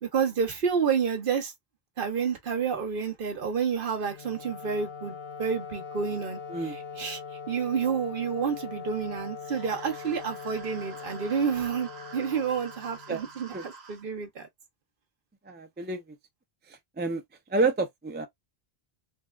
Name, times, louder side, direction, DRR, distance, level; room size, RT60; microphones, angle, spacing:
voice 1, 0.0-1.5 2.0-7.2 7.5-14.5, right 6 dB, 60° right, 1.0 m, -29 dB
Wind instrument woodwind instrument, 4.0-13.3, left 5 dB, 75° left, 1.1 m, -41 dB
sound 1, 9.4-14.0, right 4 dB, 80° right, 1.1 m, -47 dB
voice 2, 15.4-16.0 16.7-17.2 17.5-18.3, right 3 dB, 15° right, 0.4 m, -29 dB
3.4 x 2.2 x 2.3 m
omnidirectional pair, 1.0 m